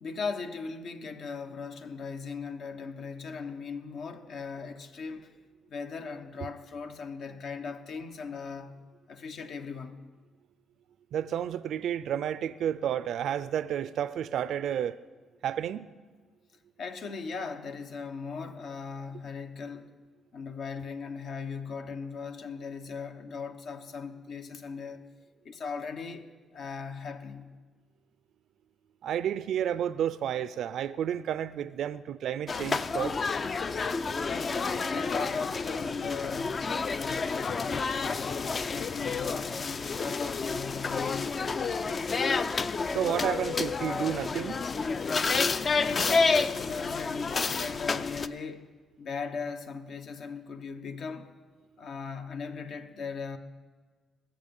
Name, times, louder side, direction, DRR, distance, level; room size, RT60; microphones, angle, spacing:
voice 1, 0.0-5.3 5.7-8.8 9.1-10.0 16.8-19.9 20.3-25.0 25.4-27.5 34.2-41.9 45.8-48.7 49.0-51.3 51.8-53.4, left 5 dB, 65° left, 1.0 m, -38 dB
voice 2, 11.1-15.0 15.4-15.9 29.0-33.2 42.9-44.6, right 9 dB, 70° right, 0.4 m, -31 dB
sound 1, 32.5-48.3, left 4 dB, 40° left, 0.5 m, -30 dB
21.0 x 7.0 x 5.4 m
cardioid pair, 90°, 0 cm